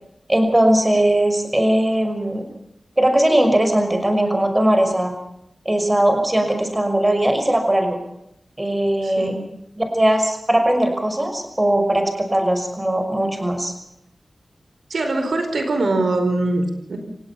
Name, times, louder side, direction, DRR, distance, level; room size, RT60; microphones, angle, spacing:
voice 1, 0.3-2.5 3.0-5.1 5.7-8.0 8.6-9.4 9.9-13.7, right 1 dB, 20° right, 5 dB, 5.8 m, -19 dB
voice 2, 14.9-17.0, right 2 dB, 85° right, 6 dB, 4.5 m, -22 dB
28.0 x 18.0 x 5.8 m, 0.77 s
wide cardioid pair, 85°, 0 cm